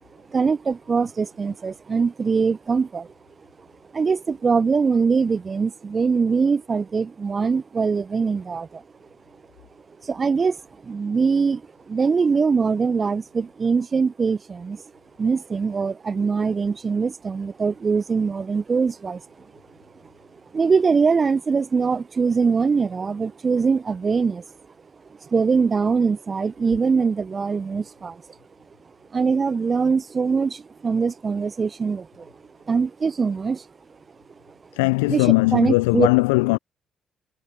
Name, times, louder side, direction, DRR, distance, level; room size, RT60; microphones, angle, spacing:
voice 1, 0.3-3.1 3.9-8.8 10.0-11.6 11.9-14.8 15.2-19.2 20.5-24.4 25.2-28.2 29.1-32.3 32.7-33.6 34.5-34.6 35.1-36.1, right 5 dB, 35° right, 0.8 m, -22 dB
voice 2, 34.7-36.6, left 27 dB, 75° left, 0.4 m, -19 dB
figure-of-eight pair, 45°, 0 cm